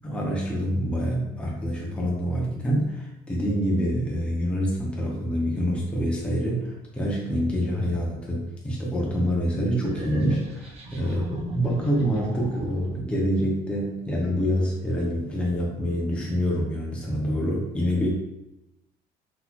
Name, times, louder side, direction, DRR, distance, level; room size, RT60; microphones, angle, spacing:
voice 1, 0.0-18.1, equal, 5° left, -3 dB, 0.6 m, -26 dB
sound 1, 9.9-12.9, equal, 35° right, 0.8 m, -37 dB
3.8 x 2.9 x 2.3 m, 0.91 s
cardioid pair, 110°, 17 cm